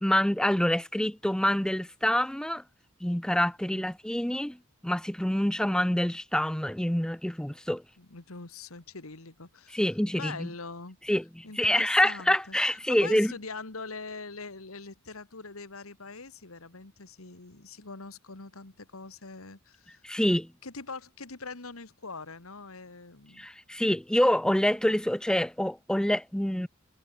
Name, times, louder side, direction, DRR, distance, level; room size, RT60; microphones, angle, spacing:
voice 1, 0.0-2.6 3.0-4.6 4.8-7.8 9.7-10.5 11.1-13.3 20.0-20.5 23.4-26.7, left 1 dB, 5° left, 0.5 m, -26 dB
voice 2, 8.0-9.8 10.1-11.0 11.4-12.6 12.9-20.1 20.6-23.5, left 4 dB, 75° left, 2.0 m, -43 dB
head